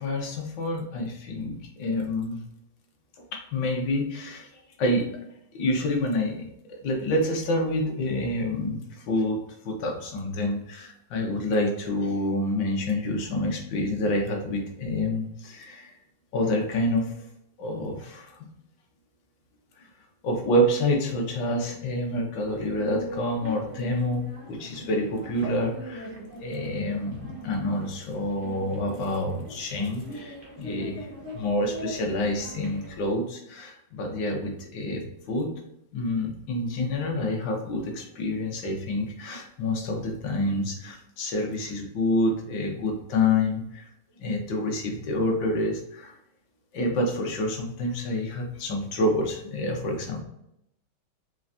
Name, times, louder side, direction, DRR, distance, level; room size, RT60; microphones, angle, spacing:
voice 1, 0.0-2.4 3.3-4.5 4.8-5.1 5.5-6.5 6.8-8.8 9.1-9.4 9.6-15.9 16.3-17.2 17.6-18.3 20.2-26.1 26.4-35.0 35.3-35.5 35.9-43.9 44.2-46.1 46.7-50.2, left 1 dB, 70° left, 1 dB, 1.6 m, -28 dB
sound 1, 22.4-33.1, equal, 60° right, 0.5 m, -41 dB
4.6 x 3.3 x 2.6 m, 0.81 s
omnidirectional pair, 2.2 m